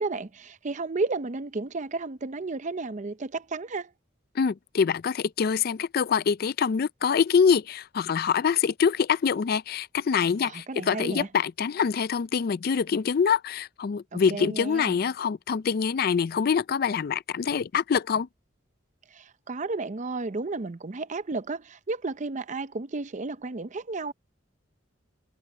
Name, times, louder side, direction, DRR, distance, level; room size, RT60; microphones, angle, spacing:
voice 1, 0.0-3.9 10.4-11.3 14.1-15.0 19.1-24.1, right 3 dB, 40° right, 0.6 m, -32 dB
voice 2, 4.4-18.3, left 6 dB, 50° left, 0.4 m, -25 dB
head